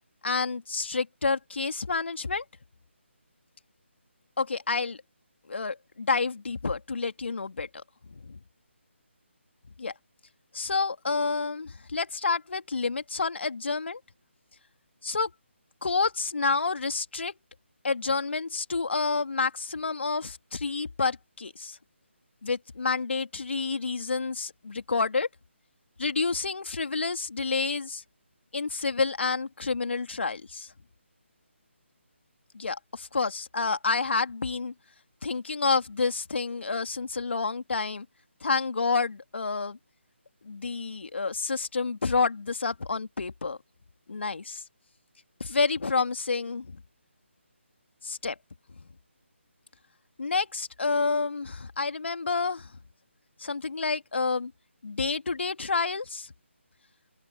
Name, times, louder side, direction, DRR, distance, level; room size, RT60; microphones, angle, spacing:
voice 1, 0.2-2.4 4.4-5.0 5.5-7.7 8.1-8.2 9.8-9.9 10.5-14.0 15.0-15.3 15.8-17.3 17.8-21.8 22.4-25.3 26.0-28.0 28.5-30.7 32.5-34.7 35.2-38.1 38.4-39.8 40.4-43.6 44.1-44.6 45.4-46.8 48.0-48.4 50.2-52.7 53.4-54.5 54.8-56.3, left 4 dB, 60° left, 2.6 m, -29 dB
open air
figure-of-eight pair, 155°, 7 cm